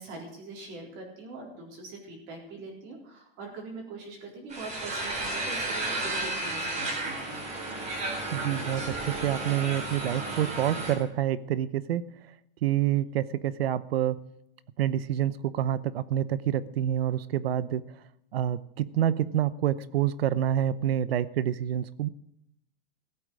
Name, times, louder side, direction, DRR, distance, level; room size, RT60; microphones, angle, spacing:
voice 1, 0.0-7.5, right 3 dB, 40° right, 0 dB, 4.0 m, -43 dB
sound 1, 4.5-11.0, right 2 dB, 25° right, 3.9 m, -33 dB
voice 2, 8.3-12.1 12.6-14.2 14.8-17.8 18.3-22.1, right 11 dB, 90° right, 17 dB, 0.9 m, -27 dB
15.5 x 8.5 x 6.3 m, 0.77 s
supercardioid pair, 155°, 29 cm